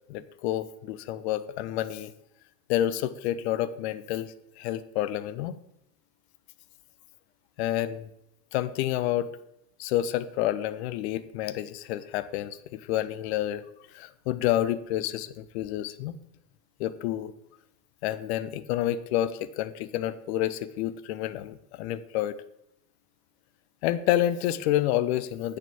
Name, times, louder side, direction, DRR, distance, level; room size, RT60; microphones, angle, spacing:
voice 1, 0.1-2.1 2.7-5.6 7.6-8.1 8.5-9.3 9.8-13.6 13.9-16.1 16.8-17.3 18.0-22.4 23.8-25.6, left 13 dB, 45° left, 14 dB, 0.7 m, -29 dB
7.6 x 6.5 x 7.1 m, 0.82 s
figure-of-eight pair, 80°, 48 cm